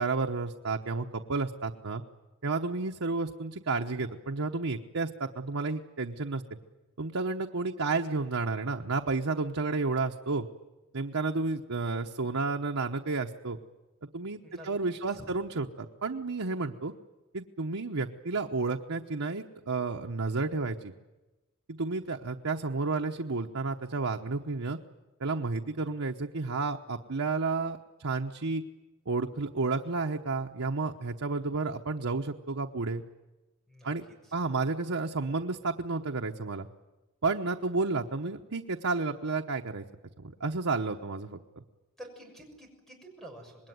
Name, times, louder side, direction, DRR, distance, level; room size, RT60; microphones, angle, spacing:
voice 1, 0.0-2.0 2.4-6.4 7.0-10.4 10.9-13.6 14.1-16.9 17.3-20.9 21.7-24.8 25.2-28.6 29.1-33.0 33.8-34.0 34.3-36.7 37.2-39.8 40.2-41.4, right 3 dB, 90° right, 2 dB, 1.1 m, -31 dB
voice 2, 42.0-43.7, right 1 dB, ahead, 2 dB, 6.6 m, -48 dB
26.5 x 21.0 x 9.4 m, 1.1 s
head